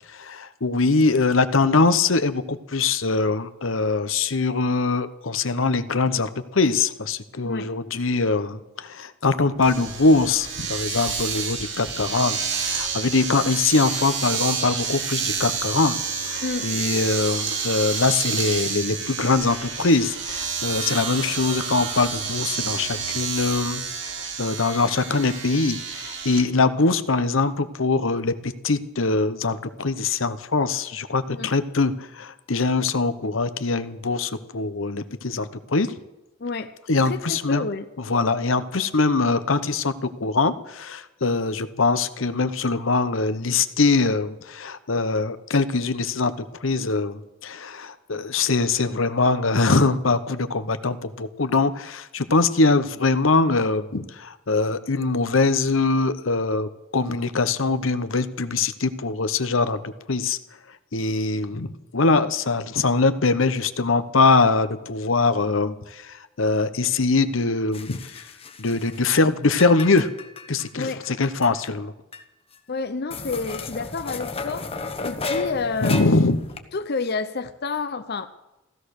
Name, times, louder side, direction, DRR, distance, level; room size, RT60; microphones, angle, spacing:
voice 1, 0.1-16.0 16.2-35.9 36.9-37.7 38.0-46.3 46.6-60.4 60.9-68.0 68.6-70.1 70.5-71.9 75.8-76.4, left 3 dB, 80° left, 12 dB, 1.0 m, -22 dB
Domestic sounds home sounds, 9.6-26.4, right 6 dB, 65° right, 3.0 m, -29 dB
voice 2, 16.4-16.7 31.3-31.5 36.4-36.7 37.0-37.9 70.8-71.0 72.7-74.7 75.0-76.2 76.7-78.3, left 4 dB, 55° left, 9 dB, 0.7 m, -29 dB
sound 1, 67.7-69.2 69.4-71.7 72.1-72.2 72.5-72.6 73.1-76.6, left 4 dB, 30° left, 1.1 m, -33 dB
16.0 x 13.5 x 6.5 m, 0.98 s
head